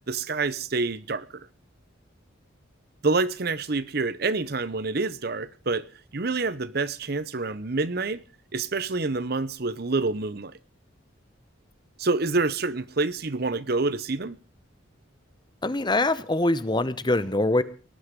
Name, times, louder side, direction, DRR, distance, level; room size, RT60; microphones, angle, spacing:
voice 1, 0.1-1.5 3.0-5.9 6.1-8.2 8.5-10.6 12.0-14.4, right 3 dB, 50° right, 0.9 m, -27 dB
voice 2, 15.6-17.6, left 2 dB, 20° left, 0.9 m, -23 dB
19.0 x 11.5 x 5.2 m
head